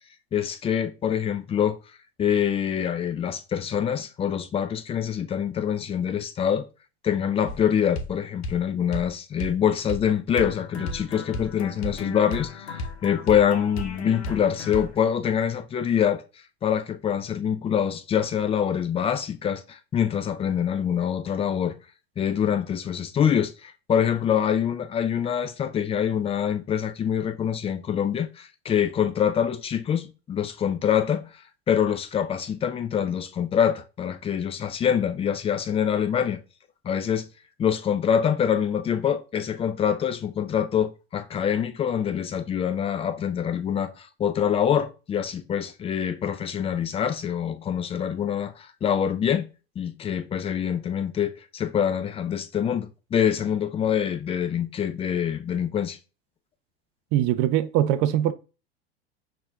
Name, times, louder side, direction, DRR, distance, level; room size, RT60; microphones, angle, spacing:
voice 1, 0.3-1.8 2.2-6.7 7.0-16.2 16.6-21.8 22.2-31.3 31.7-36.4 36.8-37.3 37.6-49.5 49.8-56.0, left 8 dB, 20° left, 0.4 m, -25 dB
sound 1, 7.5-7.6 7.9-8.1 8.4-8.6 8.9-9.1 9.4-9.6 9.9-10.1 10.4-15.0, left 3 dB, 75° left, 0.7 m, -34 dB
voice 2, 57.1-58.3, right 12 dB, 40° right, 0.5 m, -22 dB
5.8 x 2.7 x 2.2 m
hypercardioid pair, 85°, 32 cm